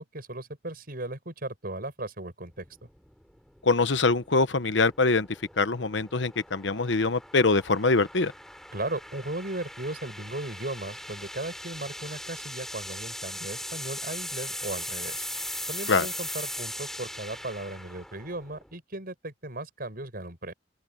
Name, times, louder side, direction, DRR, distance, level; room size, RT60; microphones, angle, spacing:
voice 1, 0.0-2.9 8.7-15.3 15.7-20.5, right 2 dB, 55° right, 7.0 m, -36 dB
sound 1, 2.5-18.8, left 1 dB, ahead, 6.3 m, -40 dB
voice 2, 3.6-5.3 5.6-8.3 15.9-16.1, left 3 dB, 90° left, 1.1 m, -23 dB
open air
head